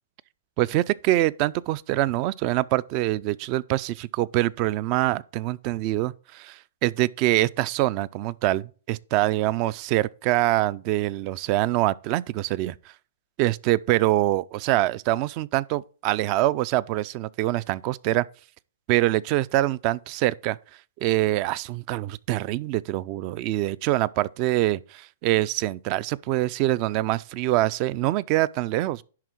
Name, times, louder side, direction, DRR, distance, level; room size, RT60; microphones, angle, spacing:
voice 1, 0.6-12.9 13.4-18.3 18.9-20.6 21.0-29.0, right 16 dB, 40° right, 0.4 m, -24 dB
10.5 x 3.7 x 6.2 m
hypercardioid pair, 140°, 0 cm